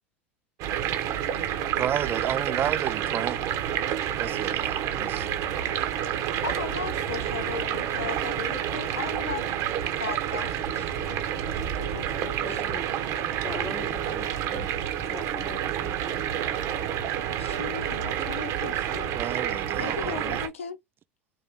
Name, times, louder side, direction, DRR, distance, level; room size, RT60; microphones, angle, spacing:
sound 1, 0.6-20.5, right 10 dB, 55° right, 1.1 m, -29 dB
voice 1, 1.8-3.5 4.2-5.3 19.1-20.4, right 10 dB, 35° right, 0.3 m, -32 dB
voice 2, 4.8-5.3 12.2-12.9 13.4-14.3 14.5-14.7 15.1-16.2, left 4 dB, 20° left, 0.9 m, -41 dB
voice 3, 6.4-9.4 10.0-11.3 11.8-12.8 17.4-19.2 19.8-20.8, left 7 dB, 85° left, 0.8 m, -37 dB
Wind instrument woodwind instrument, 14.0-20.1, right 12 dB, 85° right, 0.6 m, -42 dB
4.5 x 2.7 x 3.7 m
hypercardioid pair, 85°, 7 cm